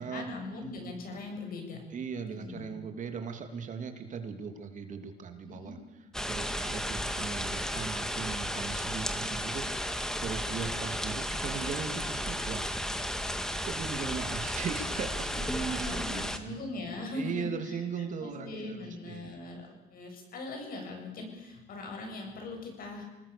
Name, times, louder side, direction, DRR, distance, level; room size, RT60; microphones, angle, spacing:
voice 1, 0.0-1.9 2.3-2.7 5.4-5.8 15.3-17.8 18.2-23.0, left 1 dB, 60° left, 3 dB, 7.8 m, -40 dB
voice 2, 1.9-5.8 6.3-12.6 13.6-16.6 17.1-19.4, right 6 dB, 50° right, 6 dB, 3.0 m, -39 dB
sound 1, 6.1-16.4, equal, 5° left, 2.0 m, -34 dB
27.0 x 19.5 x 7.0 m, 1.1 s
cardioid pair, 110°, 17 cm